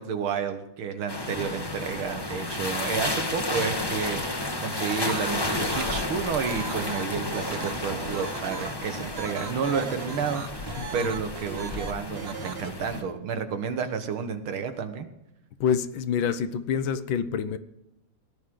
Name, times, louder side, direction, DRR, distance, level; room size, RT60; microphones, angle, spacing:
voice 1, 0.0-15.1, right 6 dB, 80° right, 8 dB, 2.1 m, -31 dB
sound 1, 1.1-13.0, left 2 dB, 15° left, 0.9 m, -32 dB
sound 2, 3.8-12.0, left 3 dB, 40° left, 1.8 m, -45 dB
sound 3, 4.8-12.7, right 6 dB, 60° right, 0.6 m, -38 dB
voice 2, 15.6-17.6, left 7 dB, 70° left, 13 dB, 1.4 m, -27 dB
17.5 x 11.0 x 3.8 m, 0.89 s
omnidirectional pair, 2.3 m